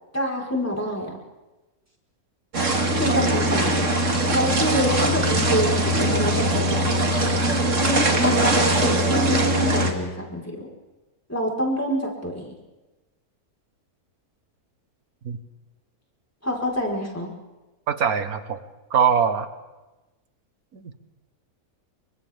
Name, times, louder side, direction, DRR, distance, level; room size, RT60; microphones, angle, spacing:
voice 1, 0.1-1.1 2.9-3.9 4.3-6.9 8.2-10.7 11.3-12.5 16.4-17.3, equal, 10° left, -1 dB, 4.7 m, -26 dB
sound 1, 2.5-9.9, right 1 dB, 50° right, 2.6 m, -21 dB
voice 2, 17.9-18.6 18.9-19.5 20.7-20.9, right 7 dB, 70° right, 9 dB, 1.8 m, -22 dB
29.0 x 24.5 x 3.7 m, 1.1 s
omnidirectional pair, 1.6 m